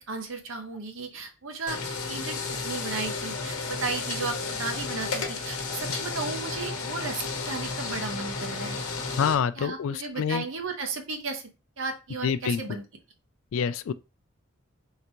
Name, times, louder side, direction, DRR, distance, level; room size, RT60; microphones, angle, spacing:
voice 1, 0.1-1.8 2.1-8.8 9.2-11.4 11.8-12.8, right 4 dB, 65° right, 0.8 m, -34 dB
sound 1, 1.7-9.3, left 4 dB, 90° left, 0.9 m, -32 dB
voice 2, 9.2-10.4 12.2-12.6 13.5-13.9, left 7 dB, 70° left, 0.3 m, -26 dB
3.8 x 3.3 x 3.0 m
head